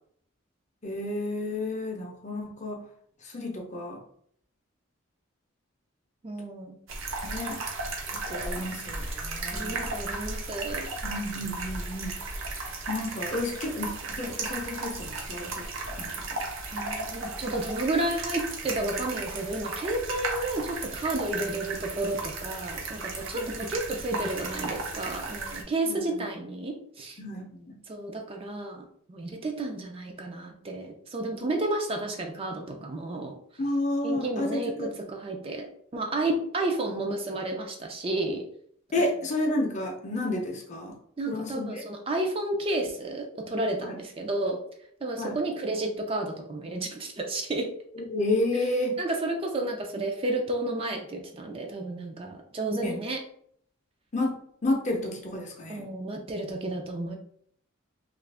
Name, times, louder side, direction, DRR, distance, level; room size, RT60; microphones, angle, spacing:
voice 1, 0.8-2.8 3.3-4.0 7.2-7.6 8.1-9.9 11.0-12.1 12.9-15.7 16.0-16.4 23.3-23.5 25.8-26.2 27.2-27.7 33.6-34.9 38.9-41.0 41.3-41.8 45.2-45.3 48.1-49.0 52.8-52.9 54.1-54.4 54.6-55.8, left 2 dB, 35° left, 1 dB, 0.6 m, -31 dB
voice 2, 6.2-6.8 9.5-10.9 16.7-27.2 27.9-33.3 34.0-38.4 39.0-39.1 41.2-44.6 45.0-47.7 49.0-53.2 55.7-57.2, right 2 dB, 25° right, 2 dB, 0.4 m, -31 dB
sound 1, 6.9-25.6, right 3 dB, 70° right, 0.7 m, -35 dB
2.7 x 2.4 x 3.3 m, 0.64 s
head